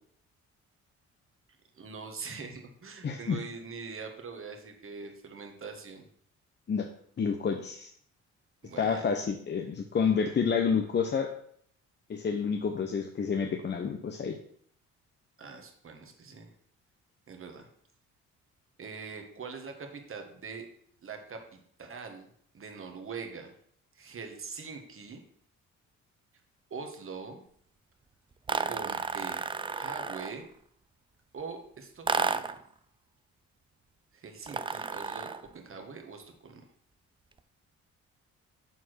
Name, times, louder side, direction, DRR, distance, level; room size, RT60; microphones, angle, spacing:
voice 1, 1.7-6.0 8.6-9.1 15.4-16.5 17.3-17.7 18.8-20.7 21.0-22.3 22.5-23.5 23.9-25.2 26.7-27.4 28.6-30.4 31.3-32.5 34.1-36.7, right 5 dB, 45° right, 4 dB, 1.6 m, -43 dB
voice 2, 3.0-3.4 6.7-6.9 7.2-7.9 8.8-11.3 12.1-14.4, left 6 dB, 35° left, 4 dB, 0.8 m, -29 dB
sound 1, 28.5-30.4 32.1-32.7 34.5-35.5, right 4 dB, 15° right, 0.4 m, -32 dB
7.1 x 4.5 x 6.3 m, 0.64 s
cardioid pair, 90°, 30 cm